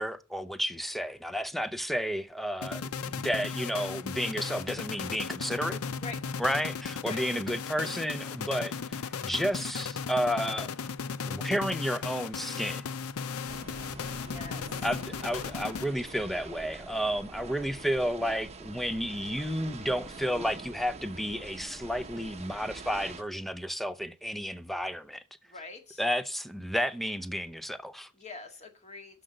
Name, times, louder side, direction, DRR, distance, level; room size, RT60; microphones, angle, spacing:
voice 1, 0.0-5.8 6.4-10.7 11.3-12.9 14.8-25.2 26.0-28.1, equal, ahead, 0.6 m, -32 dB
sound 1, 2.6-16.2, left 6 dB, 80° left, 0.6 m, -36 dB
sound 2, 13.5-23.2, right 3 dB, 30° right, 0.9 m, -45 dB
voice 2, 14.2-14.8 25.4-26.0 28.1-29.2, left 3 dB, 30° left, 1.9 m, -44 dB
7.7 x 6.6 x 7.9 m
head